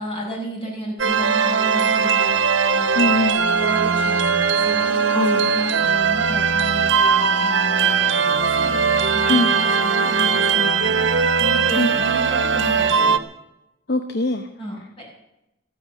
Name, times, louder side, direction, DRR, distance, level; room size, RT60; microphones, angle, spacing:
voice 1, 0.0-2.4 2.7-8.8 9.1-13.2 14.6-15.0, equal, 30° left, -2 dB, 6.5 m, -32 dB
sound 1, 1.0-13.2, right 5 dB, 70° right, 1.1 m, -19 dB
voice 2, 3.0-3.4 5.1-5.5 9.3-9.5 11.8-11.9 13.9-14.5, left 2 dB, 55° left, 7 dB, 1.0 m, -22 dB
14.5 x 9.7 x 9.0 m, 0.90 s
head